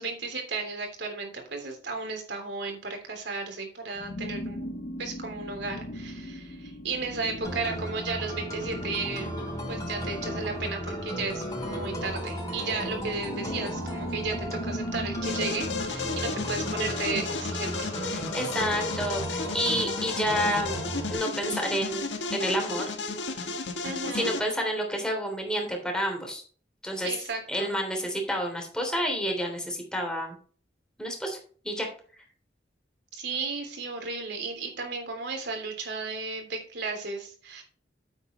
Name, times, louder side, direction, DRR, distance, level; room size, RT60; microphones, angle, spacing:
voice 1, 0.0-4.7 5.0-9.3 9.7-17.9 23.8-24.3 27.0-27.7 33.1-37.6, right 4 dB, 65° right, 3 dB, 3.4 m, -34 dB
sound 1, 3.9-15.9, left 1 dB, 50° left, 1.7 m, -39 dB
sound 2, 7.4-21.2, equal, 20° left, 3.9 m, -35 dB
sound 3, 15.2-24.4, left 4 dB, 80° left, 1.6 m, -33 dB
voice 2, 18.1-20.8 21.1-22.0 22.3-22.9 24.1-26.4 26.8-27.1 27.5-30.4 31.0-31.4 31.6-31.9, equal, 5° left, 2 dB, 3.3 m, -29 dB
9.4 x 8.1 x 3.2 m, 0.41 s
head